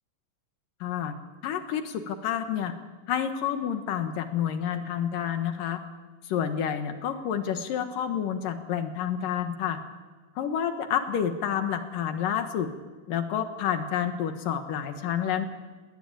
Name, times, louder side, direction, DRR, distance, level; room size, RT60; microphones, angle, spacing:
voice 1, 0.8-1.1 1.4-2.7 3.1-5.8 6.2-9.8 10.4-12.7 13.1-15.4, left 9 dB, 80° left, 8 dB, 3.0 m, -29 dB
19.5 x 19.5 x 8.7 m, 1.4 s
omnidirectional pair, 4.0 m